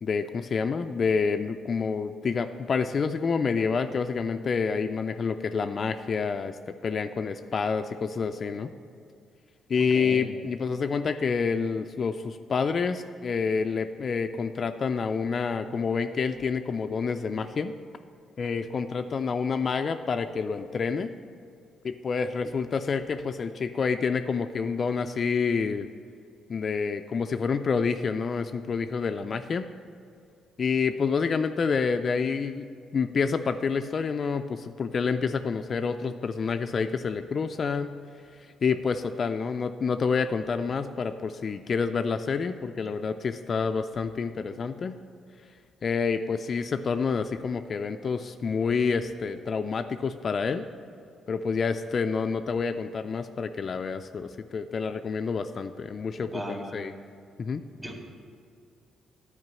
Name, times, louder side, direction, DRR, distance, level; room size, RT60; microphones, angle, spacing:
voice 1, 0.0-8.7 9.7-17.7 18.4-21.1 21.8-25.9 26.5-29.7 30.6-38.0 38.3-45.0 45.8-50.6 51.3-56.9 57.4-57.6, left 5 dB, 45° left, 8 dB, 0.3 m, -28 dB
voice 2, 9.8-10.3 56.2-56.8 57.8-58.1, equal, 20° right, 0 dB, 2.0 m, -37 dB
9.5 x 4.9 x 7.4 m, 2.3 s
cardioid pair, 90°, 0 cm